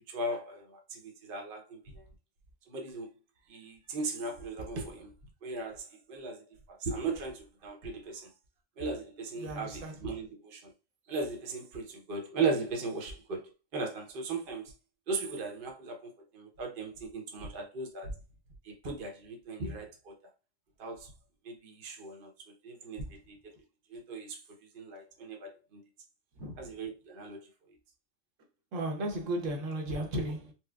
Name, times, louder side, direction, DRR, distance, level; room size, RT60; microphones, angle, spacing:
voice 1, 0.1-1.8 2.7-3.1 3.5-5.1 5.4-8.3 8.8-10.7 11.1-14.7 15.1-18.2 18.6-20.1 20.8-21.1 21.4-22.3 22.6-23.4 23.9-24.4 24.7-25.8 26.6-27.4, right 3 dB, 50° right, 0.8 m, -37 dB
voice 2, 9.4-9.9 23.0-23.1 26.4-26.6 28.7-30.5, right 1 dB, 75° right, 1.1 m, -34 dB
4.4 x 2.0 x 2.2 m
omnidirectional pair, 1.4 m